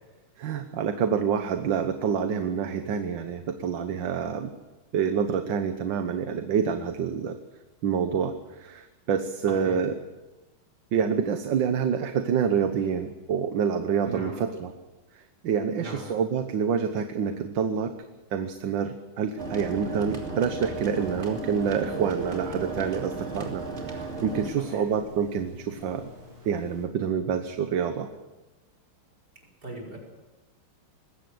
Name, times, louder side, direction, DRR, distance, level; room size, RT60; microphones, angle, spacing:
voice 1, 0.4-4.5 4.9-7.4 7.8-9.9 10.9-14.7 15.1-17.9 18.3-26.1 26.4-28.1, right 7 dB, 65° right, 8 dB, 1.7 m, -27 dB
voice 2, 9.5-9.8 14.0-14.4 15.8-16.1 24.4-24.9 29.4-30.0, right 2 dB, 50° right, -1 dB, 5.6 m, -39 dB
sound 1, 19.4-24.5, right 3 dB, 30° right, 3.3 m, -35 dB
Telephone, 20.7-26.9, right 4 dB, 85° right, 5.1 m, -41 dB
20.5 x 16.5 x 7.9 m, 1.1 s
omnidirectional pair, 2.3 m